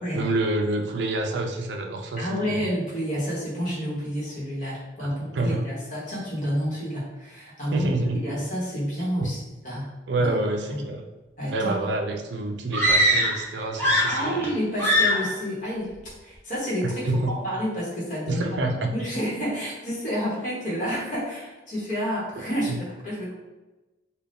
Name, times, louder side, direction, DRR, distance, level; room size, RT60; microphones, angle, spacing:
voice 1, 0.1-2.6 5.2-5.6 7.7-8.2 9.2-9.3 10.1-11.0 11.5-14.5 16.8-17.3 18.3-18.9 22.7-22.8, right 2 dB, 70° right, 3 dB, 0.4 m, -27 dB
voice 2, 2.1-7.9 8.2-9.9 10.2-10.3 10.7-10.9 11.4-11.7 14.0-15.9 16.2-18.5 18.9-23.3, equal, 40° left, -6 dB, 1.1 m, -29 dB
sound 1, 12.7-13.5 13.7-14.5 14.8-15.3, equal, 10° left, 0.6 m, -21 dB
2.6 x 2.3 x 3.4 m, 1.1 s
head